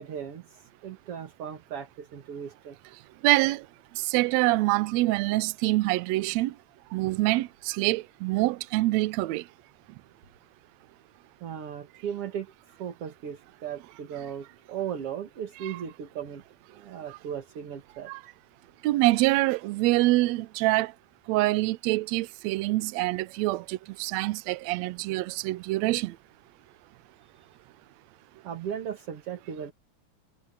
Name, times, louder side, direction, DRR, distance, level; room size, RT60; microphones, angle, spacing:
voice 1, 0.0-2.8 11.4-12.5 12.8-16.4 16.7-18.1 28.4-29.7, right 8 dB, 50° right, 2.4 m, -37 dB
voice 2, 3.2-3.6 4.0-6.5 6.9-9.4 15.6-15.7 18.1-18.2 18.8-20.9 21.3-26.1, right 19 dB, 85° right, 1.5 m, -25 dB
omnidirectional pair, 3.8 m